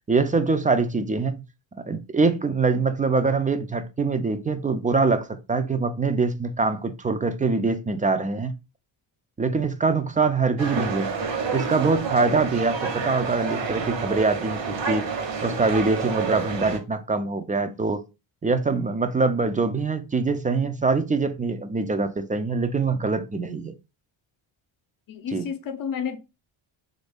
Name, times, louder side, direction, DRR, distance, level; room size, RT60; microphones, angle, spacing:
voice 1, 0.1-1.4 1.8-8.5 9.4-11.1 11.5-15.1 15.4-18.0 18.4-23.7 25.3-25.5, right 4 dB, 20° right, 0.4 m, -24 dB
sound 1, 10.6-16.8, right 5 dB, 65° right, 1.1 m, -29 dB
voice 2, 25.1-26.2, left 7 dB, 45° left, 0.6 m, -31 dB
3.2 x 2.6 x 3.4 m
cardioid pair, 90°, 48 cm